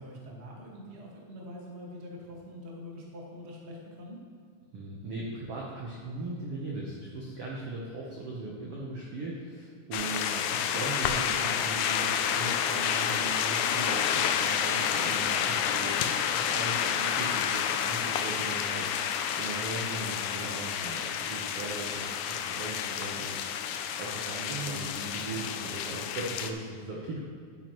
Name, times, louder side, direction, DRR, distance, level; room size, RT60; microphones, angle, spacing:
voice 1, 0.0-4.2 10.8-11.1 24.5-24.9, right 1 dB, 40° right, -3 dB, 0.9 m, -42 dB
voice 2, 4.7-16.1 16.3-23.4 24.0-27.2, right 2 dB, 80° right, -3 dB, 1.3 m, -39 dB
sound 1, 9.9-26.5, left 8 dB, 90° left, 1.7 m, -30 dB
11.0 x 8.9 x 3.1 m, 2.3 s
omnidirectional pair, 4.1 m